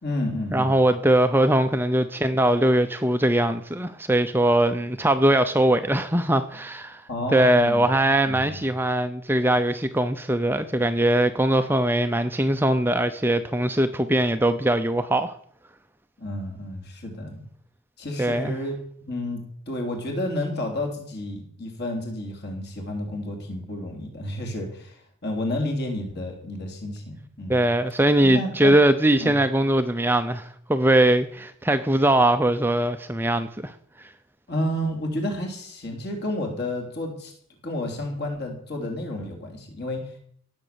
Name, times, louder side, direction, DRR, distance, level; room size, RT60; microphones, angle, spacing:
voice 1, 0.0-0.8 7.1-7.8 8.2-8.7 16.2-17.4 18.0-18.8 19.1-27.7 28.2-28.8 29.2-29.4 34.5-37.3 37.6-40.2, left 1 dB, 45° left, 3.6 m, -31 dB
voice 2, 0.5-7.0 7.3-15.3 18.2-18.5 27.5-33.7 34.0-34.1, right 1 dB, 10° right, 0.6 m, -21 dB
17.5 x 7.4 x 6.9 m
head